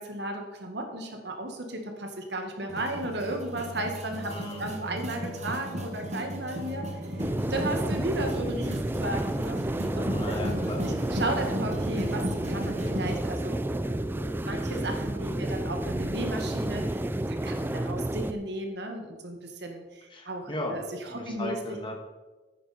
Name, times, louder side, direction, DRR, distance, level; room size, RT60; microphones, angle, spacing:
voice 1, 0.0-4.3 4.6-10.4 10.8-13.6 14.5-21.5, right 1 dB, 65° right, 3 dB, 1.8 m, -35 dB
sound 1, 2.7-13.2, equal, 40° right, 1.5 m, -36 dB
voice 2, 4.2-4.7 10.0-10.9 20.1-20.8 21.1-21.9, left 1 dB, 25° left, 1 dB, 1.8 m, -36 dB
sound 2, 4.4-15.4, right 2 dB, 80° left, 2.9 m, -48 dB
sound 3, 7.2-18.3, right 1 dB, 10° right, 0.4 m, -31 dB
10.5 x 9.2 x 4.3 m, 1.2 s
head